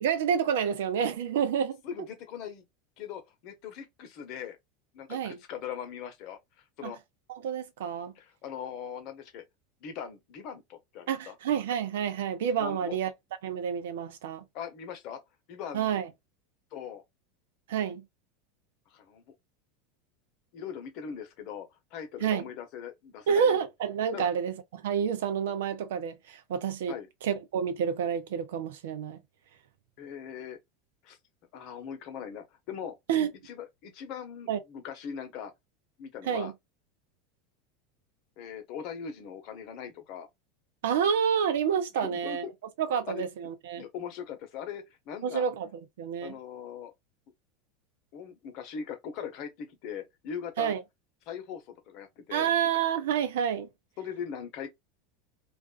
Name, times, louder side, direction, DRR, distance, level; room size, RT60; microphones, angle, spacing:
voice 1, 0.0-1.8 5.1-5.4 6.8-6.9 7.3-8.1 11.1-13.1 13.4-14.4 15.7-16.1 17.7-18.0 22.2-22.5 23.3-27.0 27.2-29.2 33.1-33.3 34.5-34.6 36.3-36.5 40.8-42.5 42.8-43.8 45.2-45.7 46.0-46.3 50.6-50.8 52.3-53.7, right 8 dB, 75° right, 0.5 m, -29 dB
voice 2, 1.8-2.6 3.0-4.6 4.9-7.0 8.1-9.4 9.8-11.3 12.6-13.0 14.5-15.2 15.5-15.9 16.7-17.0 18.9-19.2 20.5-23.5 24.1-24.2 26.9-27.1 30.0-30.6 31.0-31.2 31.5-33.0 33.4-35.5 36.0-36.5 38.4-40.3 42.0-42.5 42.9-43.3 43.8-45.4 46.2-46.9 48.1-50.7 51.3-52.5 54.0-54.7, left 8 dB, 55° left, 0.8 m, -40 dB
2.4 x 2.3 x 2.4 m
hypercardioid pair, 90°, 0 cm